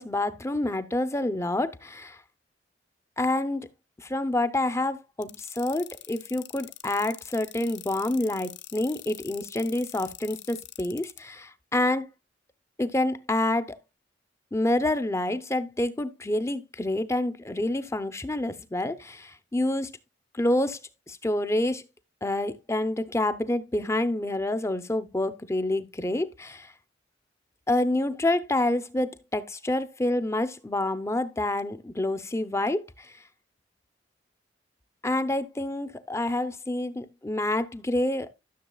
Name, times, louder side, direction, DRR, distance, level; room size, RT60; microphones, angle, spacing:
voice 1, 0.0-2.2 3.2-3.7 4.0-12.1 12.8-13.8 14.5-20.0 20.3-20.8 21.1-21.8 22.2-26.7 27.7-33.1 35.0-38.3, left 1 dB, 15° left, 0.6 m, -28 dB
sound 1, 5.2-11.2, left 13 dB, 70° left, 0.7 m, -43 dB
13.0 x 6.8 x 2.3 m
head